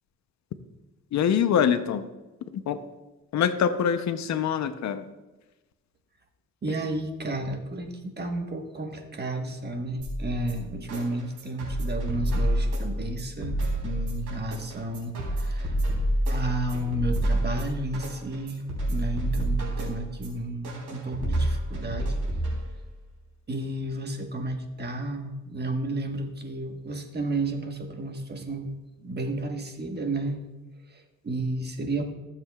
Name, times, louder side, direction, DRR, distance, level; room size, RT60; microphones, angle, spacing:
voice 1, 1.1-2.0 2.5-2.8 3.3-5.1, left 8 dB, 65° left, 10 dB, 0.7 m, -24 dB
voice 2, 6.6-15.8 16.3-22.2 23.5-28.7 29.0-30.4 30.9-32.0, right 2 dB, 35° right, 4 dB, 1.3 m, -32 dB
sound 1, 10.0-23.0, right 1 dB, 85° right, 3.5 m, -29 dB
15.5 x 7.4 x 2.4 m, 1.1 s
cardioid pair, 90°, 30 cm